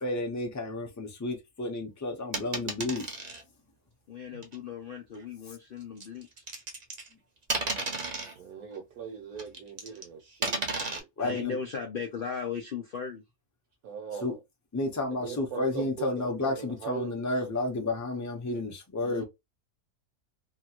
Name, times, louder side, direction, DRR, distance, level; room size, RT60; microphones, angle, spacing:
voice 1, 0.0-3.1 11.2-11.6 14.2-14.3 14.7-19.2, left 2 dB, 20° left, 0.4 m, -31 dB
sound 1, 2.3-3.4 4.4-4.6 6.0-7.1 7.5-8.3 9.4-10.0 10.4-11.0, right 3 dB, 40° right, 0.6 m, -33 dB
voice 2, 4.1-6.4 9.9-10.0 10.9-13.2 19.0-19.2, left 6 dB, 85° left, 0.4 m, -37 dB
voice 3, 8.3-11.1 13.8-14.4 15.1-17.4, right 7 dB, 65° right, 1.1 m, -40 dB
3.0 x 2.3 x 2.8 m
omnidirectional pair, 1.7 m